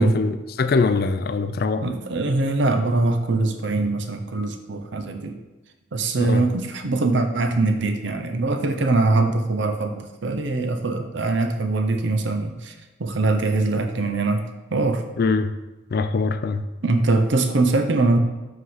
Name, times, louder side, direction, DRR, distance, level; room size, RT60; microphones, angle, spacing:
voice 1, 0.0-2.0 6.2-6.4 15.2-15.5 15.9-16.6, left 4 dB, 50° left, 11 dB, 0.3 m, -23 dB
voice 2, 1.8-5.4 5.9-12.7 13.0-14.5 14.7-15.0 16.8-18.2, right 2 dB, 60° right, 6 dB, 0.7 m, -22 dB
5.6 x 3.8 x 5.6 m, 1.1 s
head